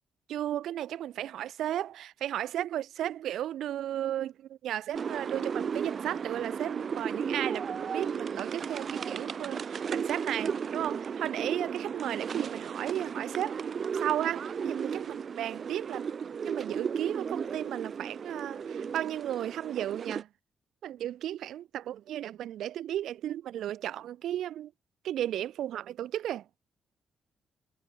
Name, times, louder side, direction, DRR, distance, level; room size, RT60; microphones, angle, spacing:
voice 1, 0.3-13.6 13.9-16.1 16.4-20.3 20.8-24.7 25.0-26.4, right 12 dB, 80° right, 4.2 m, -34 dB
sound 1, 4.9-20.2, right 6 dB, 40° right, 3.5 m, -35 dB
wide cardioid pair, 170°, 0 cm